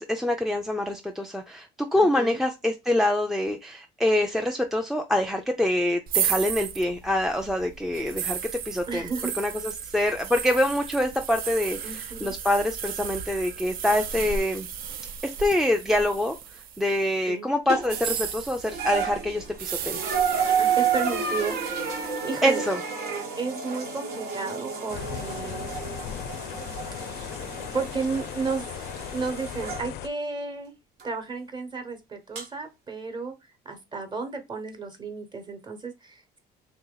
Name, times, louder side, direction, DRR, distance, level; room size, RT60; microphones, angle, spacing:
voice 1, 0.0-1.7 1.9-8.4 8.7-9.1 9.4-11.8 12.2-14.7 15.2-16.3 16.8-20.0 22.4-22.8, left 1 dB, ahead, 0.4 m, -25 dB
voice 2, 1.9-2.4 8.9-9.3 11.8-12.3 17.3-17.5 20.5-22.7 23.4-25.7 27.0-27.3 27.7-28.7 29.1-30.7 31.0-36.4, right 4 dB, 25° right, 1.0 m, -33 dB
sound 1, 6.1-17.0 17.8-22.6, right 8 dB, 60° right, 0.5 m, -34 dB
sound 2, 17.7-18.1 18.6-29.8 31.0-31.1 32.3-32.4, right 6 dB, 80° right, 1.2 m, -30 dB
sound 3, 24.9-30.1, left 11 dB, 75° left, 0.4 m, -37 dB
3.1 x 2.9 x 3.7 m
cardioid pair, 110°, 17 cm